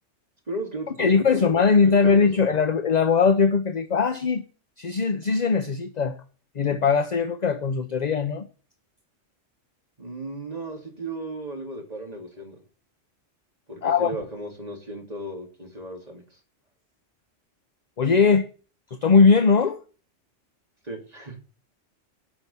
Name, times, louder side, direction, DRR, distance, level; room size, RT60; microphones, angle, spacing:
voice 1, 0.5-1.4 1.8-2.4 10.0-12.6 13.7-16.4 20.8-21.4, right 1 dB, 30° right, 2.9 m, -35 dB
voice 2, 1.0-4.4 4.8-6.2 6.6-8.5 13.8-14.1 18.0-18.5 18.9-19.8, left 5 dB, 40° left, 0.8 m, -20 dB
11.0 x 5.8 x 8.4 m
omnidirectional pair, 1.3 m